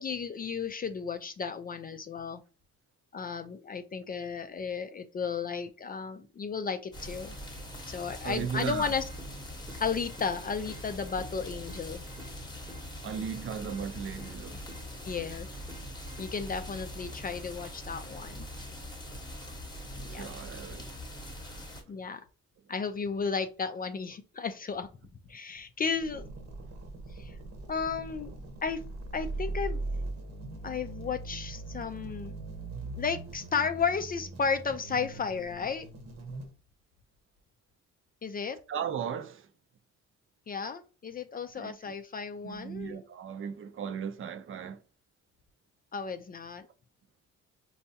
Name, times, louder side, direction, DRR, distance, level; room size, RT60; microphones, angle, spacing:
voice 1, 0.0-2.4 3.1-7.3 7.9-9.0 9.8-12.0 15.0-15.5 16.2-18.5 20.0-20.3 21.9-22.2 22.7-24.9 25.3-26.3 27.2-27.4 27.7-28.3 28.6-28.8 29.1-29.8 30.6-32.3 33.0-35.9 38.2-38.6 40.5-43.1 45.9-46.7, left 5 dB, 30° left, 0.4 m, -33 dB
sound 1, 6.9-21.8, equal, 15° left, 1.0 m, -42 dB
voice 2, 8.2-8.9 13.0-14.6 20.1-20.9 38.7-39.5 41.6-41.7 42.4-44.8, right 7 dB, 45° right, 0.5 m, -36 dB
sound 2, 8.7-16.7, right 1 dB, 10° right, 0.9 m, -54 dB
sound 3, 26.0-36.5, right 3 dB, 60° right, 0.9 m, -40 dB
4.4 x 2.3 x 2.7 m
cardioid pair, 90°, 30 cm